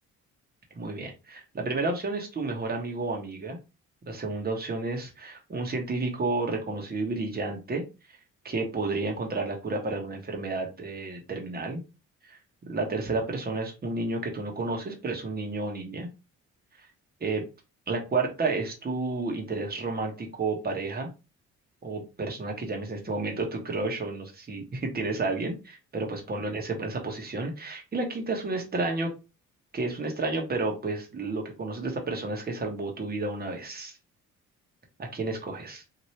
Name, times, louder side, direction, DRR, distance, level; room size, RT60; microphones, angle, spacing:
voice 1, 0.7-3.6 4.1-7.8 8.4-11.8 12.3-12.4 12.6-16.1 16.8-16.9 17.2-17.4 17.9-21.1 21.8-25.5 25.9-29.1 29.7-34.0 35.0-35.8, right 3 dB, 30° right, 2 dB, 1.2 m, -31 dB
2.9 x 2.8 x 3.1 m, 0.28 s
cardioid pair, 90°, 30 cm